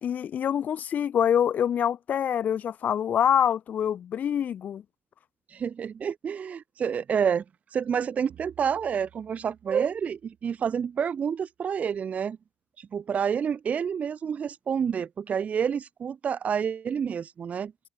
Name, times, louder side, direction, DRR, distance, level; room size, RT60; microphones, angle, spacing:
voice 1, 0.0-4.8, left 9 dB, 65° left, 0.4 m, -25 dB
voice 2, 5.5-7.4 7.7-12.4 12.8-17.7, right 7 dB, 55° right, 0.3 m, -28 dB
sound 1, 8.3-11.0, right 11 dB, 80° right, 6.4 m, -56 dB
supercardioid pair, 65°, 3 cm